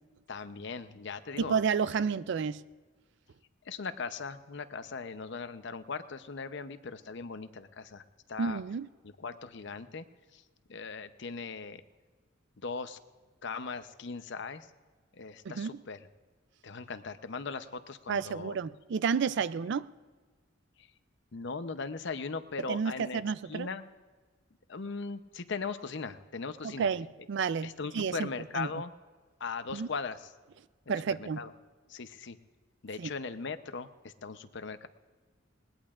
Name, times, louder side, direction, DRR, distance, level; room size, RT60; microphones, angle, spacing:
voice 1, 0.3-1.6 3.6-8.6 9.0-10.0 10.3-10.4 10.7-11.8 12.6-13.0 13.4-14.7 15.1-16.1 16.6-18.6 20.8-20.9 21.3-23.2 23.5-23.9 24.7-26.9 27.6-28.9 29.4-30.3 31.1-31.5 31.9-32.4 32.8-34.9, left 4 dB, 65° left, 10 dB, 0.7 m, -39 dB
voice 2, 1.4-2.6 8.4-8.9 15.6-15.7 18.1-19.9 22.7-23.7 26.6-28.3 28.5-28.7 29.7-29.9 30.9-31.4 33.0-33.1, right 6 dB, 65° right, 17 dB, 0.4 m, -31 dB
20.5 x 19.0 x 2.5 m, 1.4 s
head